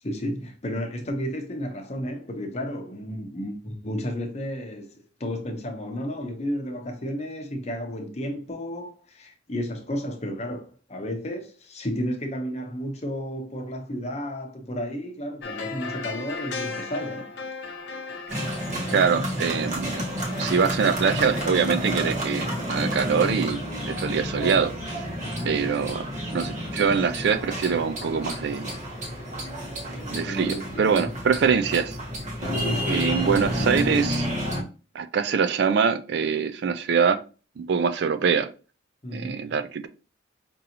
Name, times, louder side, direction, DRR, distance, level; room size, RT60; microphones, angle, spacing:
voice 1, 0.0-4.9 5.2-17.4 22.9-23.2 25.2-25.7 30.0-31.1 32.6-33.2 39.0-39.6, equal, 35° left, 0.7 m, -32 dB
sound 1, 15.4-23.1 23.3-23.4, left 4 dB, 65° left, 0.8 m, -38 dB
sound 2, 18.3-34.6, equal, 40° right, 1.0 m, -30 dB
voice 2, 18.9-20.0 20.4-25.0 25.4-28.7 29.8-32.0 32.9-34.3 34.9-37.2 37.6-38.5 39.1-39.9, right 6 dB, 55° right, 0.3 m, -24 dB
5.3 x 2.7 x 2.7 m
head